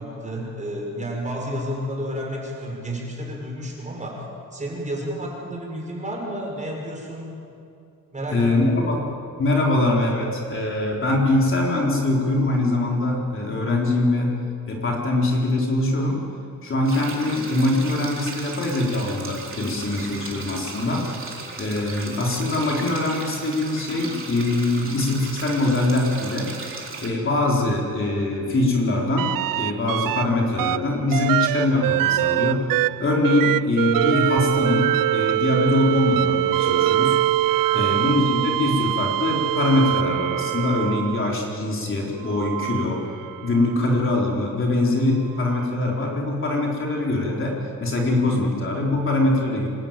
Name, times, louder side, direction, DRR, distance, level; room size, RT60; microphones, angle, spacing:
voice 1, 0.0-4.3 4.5-7.3 8.1-8.5 37.7-38.0, equal, 20° right, -1 dB, 6.3 m, -31 dB
voice 2, 8.3-9.1 9.4-14.3 14.7-16.3 16.6-21.1 21.6-26.5 27.0-32.7 33.0-37.2 37.7-43.1 43.4-49.7, left 2 dB, 40° left, -1 dB, 4.0 m, -23 dB
sound 1, 16.8-27.1, right 4 dB, 40° right, 3.7 m, -37 dB
sound 2, 29.2-30.2 30.6-41.4 42.2-43.8 45.5-45.6, right 14 dB, 80° right, 0.6 m, -23 dB
27.0 x 13.0 x 9.1 m, 2.5 s
cardioid pair, 110°, 33 cm